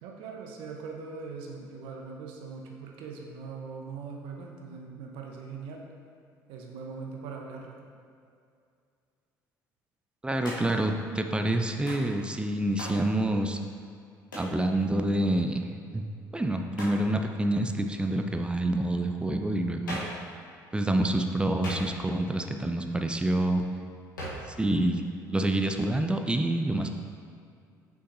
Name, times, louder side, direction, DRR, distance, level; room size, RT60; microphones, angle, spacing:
voice 1, 0.0-5.8 6.5-7.8, right 5 dB, 60° right, 1 dB, 0.8 m, -41 dB
voice 2, 10.2-13.6 14.4-16.0 16.3-20.0 20.7-23.6 24.5-25.0 25.3-26.9, right 1 dB, 10° right, 5 dB, 0.5 m, -27 dB
Hands, 10.4-10.9 11.9-12.1 12.8-13.1 14.3-14.6 16.7-17.1 19.9-20.2 21.6-22.2 24.2-24.5, equal, 80° left, 1.1 m, -38 dB
6.2 x 5.8 x 2.6 m, 2.3 s
figure-of-eight pair, 55°, 10 cm